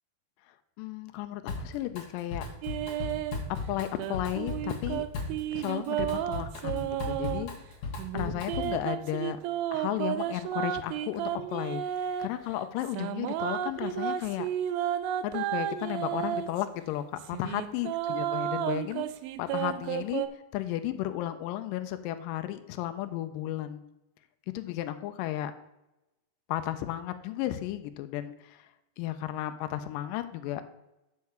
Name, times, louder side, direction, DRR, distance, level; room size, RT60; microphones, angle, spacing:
voice 1, 0.8-2.4 3.7-5.0 5.5-7.5 8.1-9.4 9.7-11.8 12.2-14.5 15.2-19.1 19.4-23.8 24.5-25.5 26.5-28.7 29.0-30.6, left 13 dB, 90° left, 10 dB, 1.9 m, -34 dB
Drum kit, 1.5-2.0 2.3-8.8, left 3 dB, 60° left, 2.5 m, -36 dB
sound 1, 2.6-3.4 4.0-7.5 8.0-12.3 12.8-16.6 17.2-20.3, right 11 dB, 80° right, 2.2 m, -32 dB
6.6 x 5.5 x 6.9 m, 0.93 s
omnidirectional pair, 4.5 m